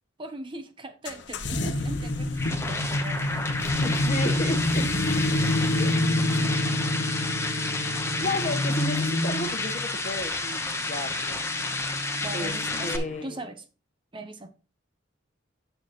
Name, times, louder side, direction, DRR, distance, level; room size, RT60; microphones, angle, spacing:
voice 1, 0.2-3.9 6.4-6.6 12.2-13.6 14.1-14.5, right 1 dB, 25° right, 0.7 m, -40 dB
sound 1, 1.1-13.2, left 1 dB, 65° left, 0.9 m, -28 dB
sound 2, 2.0-13.0, left 3 dB, 15° left, 0.9 m, -31 dB
voice 2, 3.8-4.9 5.8-6.0 8.2-11.6 12.3-12.5 12.8-13.4, left 1 dB, 35° left, 1.1 m, -33 dB
Wind instrument woodwind instrument, 4.7-8.8, right 2 dB, 65° right, 4.2 m, -47 dB
8.6 x 7.9 x 3.0 m
head